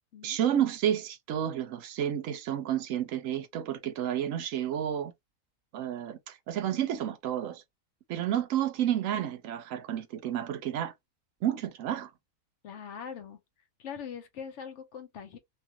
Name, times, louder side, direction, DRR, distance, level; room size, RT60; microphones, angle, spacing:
voice 1, 0.2-5.1 5.7-7.6 8.1-10.9 11.4-12.1, right 10 dB, 70° right, 0.9 m, -30 dB
voice 2, 12.6-13.4 13.8-15.4, left 7 dB, 60° left, 0.9 m, -42 dB
2.7 x 2.4 x 2.9 m
omnidirectional pair, 1.5 m